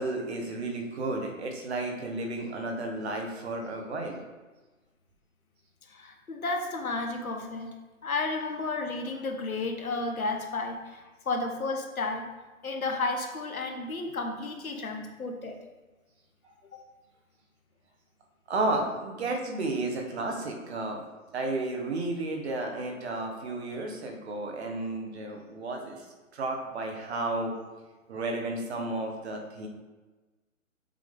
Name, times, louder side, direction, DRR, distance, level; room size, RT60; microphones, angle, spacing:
voice 1, 0.0-4.2 18.5-26.0 26.3-27.5 28.1-29.7, right 2 dB, 50° right, 2 dB, 1.3 m, -32 dB
voice 2, 5.9-7.7 8.0-12.2 12.6-15.6 16.7-16.8, left 3 dB, 90° left, 3 dB, 1.2 m, -32 dB
7.3 x 3.5 x 3.8 m, 1.2 s
hypercardioid pair, 140°, 41 cm